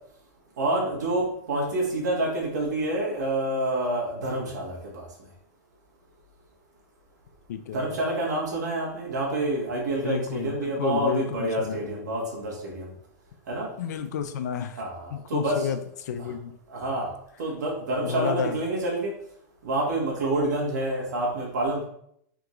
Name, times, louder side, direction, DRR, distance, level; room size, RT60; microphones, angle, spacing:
voice 1, 0.6-5.1 7.7-12.9 13.5-13.7 14.8-15.6 16.7-19.1 19.6-21.8, right 1 dB, 85° right, -2 dB, 1.5 m, -28 dB
voice 2, 7.5-7.9 10.0-12.0 13.8-14.8 15.1-16.5 18.0-18.6, left 8 dB, 75° left, 9 dB, 0.5 m, -31 dB
3.6 x 2.9 x 3.7 m, 0.69 s
supercardioid pair, 150°, 9 cm